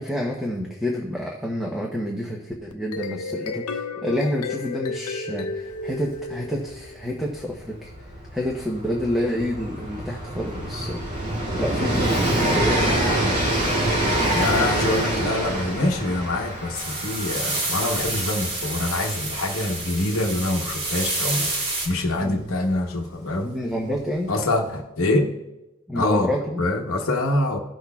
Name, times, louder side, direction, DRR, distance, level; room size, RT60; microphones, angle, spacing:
voice 1, 0.0-7.9 8.3-11.0 11.6-13.4 22.2-22.4 23.4-24.3 25.9-26.7, equal, ahead, -2 dB, 0.8 m, -28 dB
sound 1, 2.7-7.1, left 4 dB, 90° left, 0.6 m, -32 dB
Train, 5.7-5.8 6.0-22.6 23.6-23.7, right 1 dB, 40° right, 2.4 m, -26 dB
voice 2, 14.3-21.5 21.8-23.5 24.3-25.3 25.9-26.3 26.6-27.6, left 2 dB, 65° left, 2 dB, 1.0 m, -25 dB
sound 2, 16.7-21.9, right 2 dB, 80° right, 2.8 m, -28 dB
16.5 x 6.3 x 2.3 m, 1.0 s
head